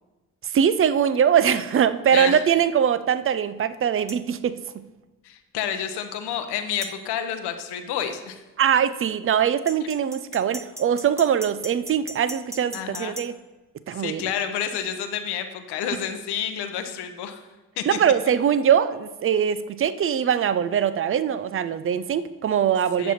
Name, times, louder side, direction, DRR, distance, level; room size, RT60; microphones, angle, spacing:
voice 1, 0.4-4.5 8.6-13.3 13.9-14.3 17.9-23.1, right 8 dB, 30° right, 14 dB, 0.6 m, -22 dB
sound 1, 4.1-4.2 6.8-7.0 9.7-13.3, right 1 dB, 5° right, 1.0 m, -38 dB
voice 2, 5.2-8.4 12.7-13.2 13.9-17.4 17.8-18.0 23.0-23.1, left 8 dB, 65° left, 7 dB, 1.0 m, -29 dB
9.8 x 7.2 x 4.3 m, 1.1 s
hypercardioid pair, 40°, 43 cm